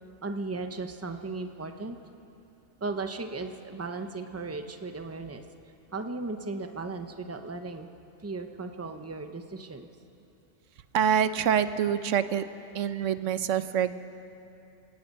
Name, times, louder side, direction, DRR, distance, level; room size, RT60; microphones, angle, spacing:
voice 1, 0.2-2.0 2.8-5.4 5.9-7.9 8.2-9.9 12.8-13.0, right 3 dB, 15° right, 7 dB, 0.7 m, -36 dB
voice 2, 10.9-12.4 12.7-13.9, right 8 dB, 90° right, 12 dB, 1.1 m, -25 dB
28.0 x 17.5 x 5.5 m, 2.8 s
omnidirectional pair, 1.3 m